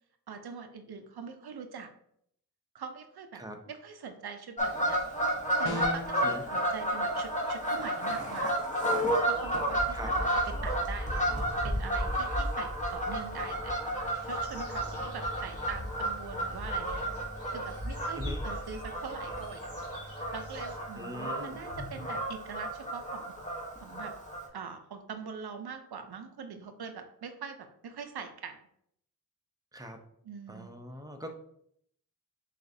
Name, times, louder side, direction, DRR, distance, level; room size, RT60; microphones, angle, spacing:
voice 1, 0.3-1.9 2.7-5.0 5.6-8.6 9.3-13.8 14.2-17.0 17.5-19.7 20.3-23.4 23.8-24.1 24.5-28.6 30.2-30.7, right 6 dB, 85° right, 7 dB, 0.6 m, -43 dB
Fowl / Bird vocalization bird call bird song, 4.6-24.5, right 1 dB, 20° left, 1.0 m, -32 dB
sound 1, 5.6-6.2, left 2 dB, 80° left, 0.8 m, -34 dB
sound 2, 9.3-20.8, left 1 dB, 40° left, 1.3 m, -39 dB
voice 2, 20.9-21.6 29.7-30.0 30.5-31.3, equal, 10° right, 4 dB, 0.6 m, -42 dB
6.9 x 2.4 x 2.7 m, 0.69 s
wide cardioid pair, 75°, 37 cm